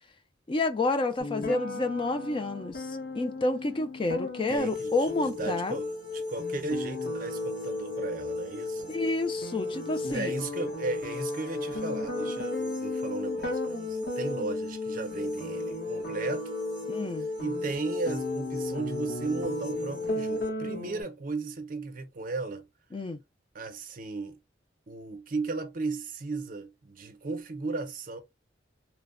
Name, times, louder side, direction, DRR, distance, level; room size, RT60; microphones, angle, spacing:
voice 1, 0.5-5.8 8.9-10.3 16.9-17.3 22.9-23.2, left 2 dB, 30° left, 0.3 m, -29 dB
sound 1, 1.2-21.0, left 1 dB, 60° left, 0.9 m, -37 dB
voice 2, 4.5-8.9 10.1-16.6 17.4-22.6 23.5-24.4 24.9-28.2, right 3 dB, 50° right, 0.6 m, -35 dB
sound 2, 4.6-20.5, left 3 dB, 75° left, 1.5 m, -35 dB
3.0 x 2.1 x 2.4 m
head